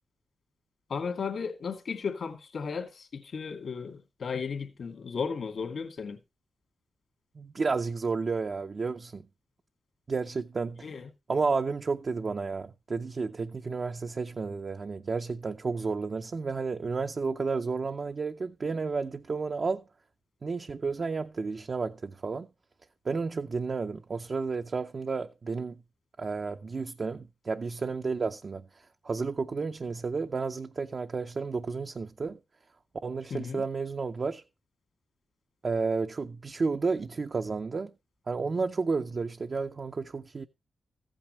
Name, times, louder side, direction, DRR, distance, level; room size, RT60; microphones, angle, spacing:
voice 1, 0.9-6.2 10.8-11.1 33.3-33.6, left 5 dB, 60° left, 2.4 m, -35 dB
voice 2, 7.4-9.3 10.1-10.9 11.3-19.8 20.4-22.5 23.0-25.8 26.2-32.4 33.0-34.4 35.6-37.9 38.3-40.5, right 4 dB, 45° right, 0.6 m, -32 dB
14.5 x 9.0 x 3.1 m
cardioid pair, 100°, 0 cm